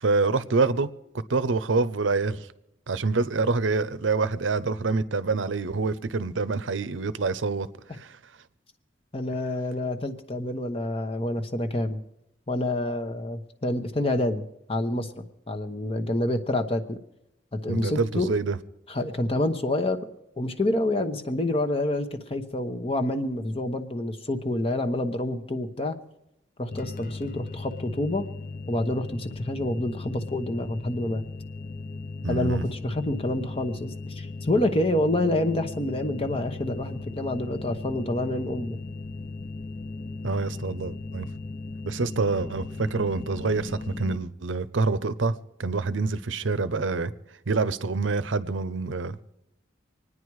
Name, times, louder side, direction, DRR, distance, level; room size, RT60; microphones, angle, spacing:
voice 1, 0.0-0.9 1.3-2.5 2.9-7.7 8.0-8.2 17.7-18.6 32.2-32.6 40.2-41.3 41.9-45.3 45.6-47.1 47.5-49.4, right 3 dB, 80° right, 0.7 m, -26 dB
voice 2, 9.1-12.0 12.5-14.4 14.7-15.1 15.5-17.0 17.6-18.3 18.9-20.0 20.4-26.0 26.6-28.3 28.7-31.2 32.3-38.8, left 1 dB, 30° left, 1.0 m, -27 dB
sound 1, 26.7-44.2, left 3 dB, 45° left, 0.5 m, -37 dB
25.5 x 9.8 x 4.8 m
head